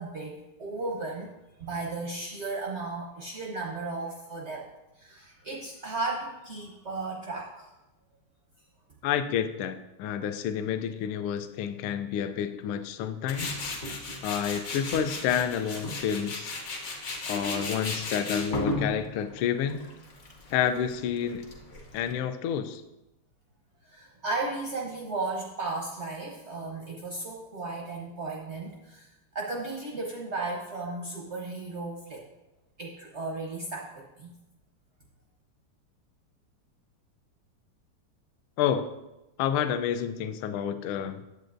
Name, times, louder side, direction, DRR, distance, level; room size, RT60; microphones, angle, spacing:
voice 1, 0.0-1.3 1.6-4.7 5.0-7.7 23.9-29.1 29.3-32.2 32.8-34.3, right 3 dB, 65° right, -1 dB, 0.6 m, -35 dB
voice 2, 9.0-13.6 14.2-16.5 17.3-19.8 20.5-21.5 21.9-22.8 38.6-38.9 39.4-41.2, left 8 dB, 80° left, 10 dB, 1.4 m, -29 dB
Tools, 13.3-22.1, left 2 dB, 50° left, 0.9 m, -35 dB
9.2 x 7.7 x 2.5 m, 0.99 s
omnidirectional pair, 2.4 m